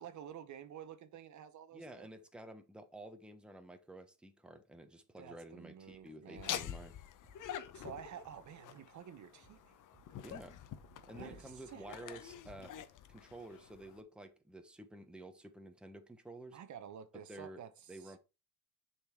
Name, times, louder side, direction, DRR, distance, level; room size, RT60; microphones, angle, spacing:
voice 1, 0.0-2.1 5.2-6.6 7.7-9.6 11.2-11.9 16.5-18.2, right 9 dB, 50° right, 0.9 m, -50 dB
voice 2, 1.7-6.9 10.2-10.6 11.1-12.8 13.1-16.6 17.3-17.6 17.9-18.2, right 1 dB, 5° right, 0.9 m, -51 dB
sound 1, 5.9-9.0 9.4-12.1, right 6 dB, 20° right, 2.6 m, -67 dB
Laughter, 6.4-14.0, left 10 dB, 55° left, 0.9 m, -46 dB
6.9 x 4.2 x 4.5 m
cardioid pair, 115°, 37 cm